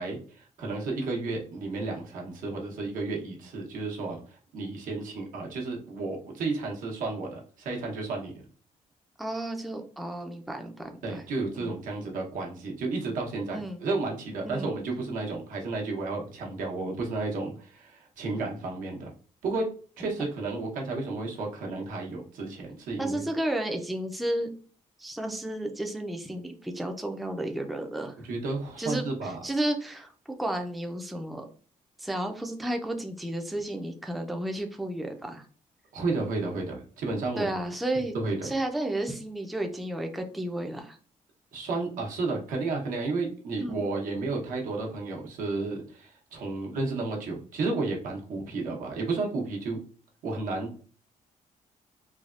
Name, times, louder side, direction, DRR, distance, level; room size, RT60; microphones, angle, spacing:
voice 1, 0.0-8.3 11.0-19.1 19.4-19.7 20.0-23.3 28.2-29.4 35.9-37.5 38.1-38.5 41.5-49.8 50.2-50.7, right 3 dB, 90° right, 0 dB, 0.9 m, -32 dB
voice 2, 9.2-11.2 11.6-11.7 13.5-13.8 14.4-14.7 23.0-24.5 25.0-28.2 28.8-31.5 32.0-35.4 37.4-38.2 38.4-41.0 43.6-43.8, right 1 dB, ahead, 4 dB, 0.3 m, -32 dB
3.3 x 2.2 x 2.4 m, 0.42 s
cardioid pair, 130°, 13 cm